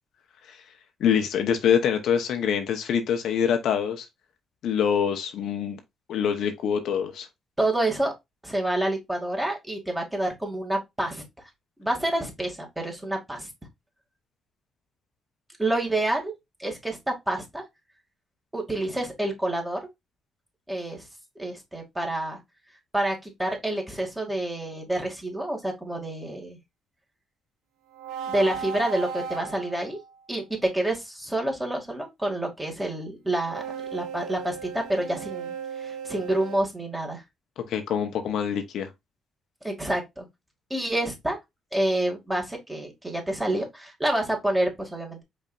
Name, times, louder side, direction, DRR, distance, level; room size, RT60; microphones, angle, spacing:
voice 1, 1.0-4.1 4.6-5.8 6.1-7.3 37.6-38.9, left 8 dB, 75° left, 0.9 m, -25 dB
voice 2, 7.6-8.1 8.4-11.2 11.8-13.5 15.6-16.3 16.6-17.6 18.5-19.8 20.7-21.1 21.4-22.4 22.9-26.6 28.3-30.0 30.3-33.6 33.9-37.2 39.6-40.3 40.7-41.4 41.7-45.2, right 1 dB, 10° right, 2.2 m, -28 dB
sound 1, 27.9-30.1 33.4-36.6, right 7 dB, 90° right, 0.8 m, -36 dB
5.3 x 4.1 x 2.4 m
cardioid pair, 90°, 0 cm